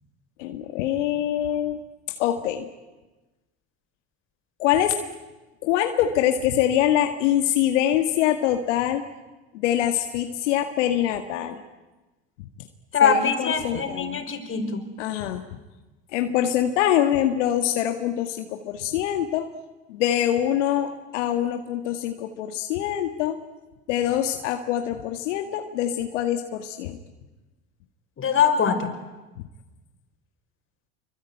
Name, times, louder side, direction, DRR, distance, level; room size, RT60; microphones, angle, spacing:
voice 1, 0.4-1.8 2.2-2.7 4.6-5.0 5.6-9.0 9.5-11.6 13.0-14.2 15.0-15.5 16.1-19.5 19.9-23.4 23.9-27.0, left 11 dB, 80° left, 6 dB, 1.9 m, -24 dB
voice 2, 12.9-14.9 28.2-28.9, left 6 dB, 35° left, 7 dB, 5.3 m, -22 dB
26.5 x 24.0 x 9.2 m, 1.1 s
hypercardioid pair, 80°, 36 cm